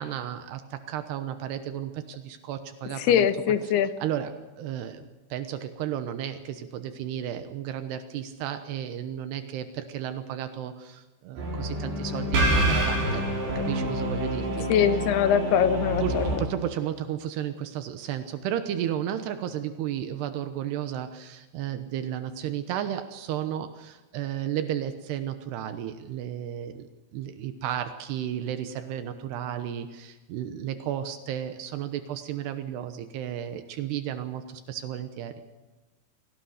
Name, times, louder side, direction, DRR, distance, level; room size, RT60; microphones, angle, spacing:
voice 1, 0.0-3.3 4.0-4.3 4.6-13.2 13.6-14.7 16.0-35.3, right 10 dB, 80° right, 9 dB, 3.1 m, -33 dB
voice 2, 3.0-3.9 14.7-16.4, left 9 dB, 75° left, 11 dB, 3.1 m, -23 dB
sound 1, 11.4-16.4, right 1 dB, 60° right, 6.6 m, -27 dB
24.0 x 18.0 x 6.5 m, 1.2 s
omnidirectional pair, 4.8 m